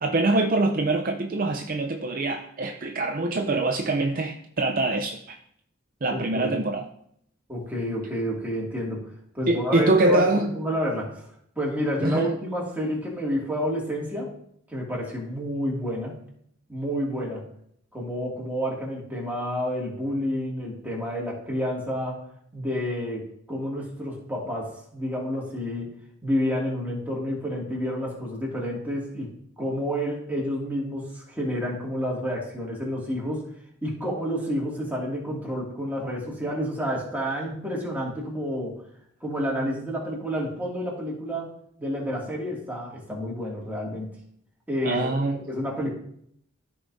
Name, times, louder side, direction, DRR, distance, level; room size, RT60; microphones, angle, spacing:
voice 1, 0.0-5.4 6.0-6.9 9.5-10.5 12.0-12.3 44.8-45.4, right 2 dB, 45° right, 4 dB, 0.6 m, -24 dB
voice 2, 6.1-6.6 7.5-9.1 9.3-11.3 11.6-14.3 14.7-16.2 16.7-17.4 17.9-22.2 22.5-25.9 26.2-33.4 33.8-38.7 39.2-41.5 41.8-44.1 44.7-45.1 45.3-45.9, equal, 10° right, -4 dB, 2.3 m, -29 dB
14.0 x 4.8 x 2.7 m, 0.68 s
head